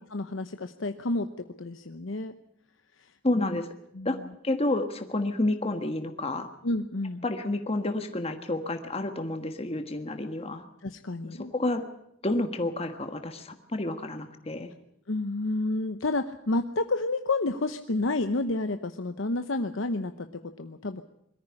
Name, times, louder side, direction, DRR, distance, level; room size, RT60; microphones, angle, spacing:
voice 1, 0.1-2.3 3.0-3.6 3.9-4.3 6.6-7.2 10.8-11.5 15.1-21.0, left 2 dB, 75° left, 8 dB, 0.9 m, -30 dB
voice 2, 3.2-3.7 4.0-4.2 4.4-6.5 7.2-10.6 11.2-11.8 12.2-14.7, left 2 dB, 30° left, 7 dB, 1.4 m, -30 dB
22.0 x 14.0 x 9.7 m, 0.78 s
head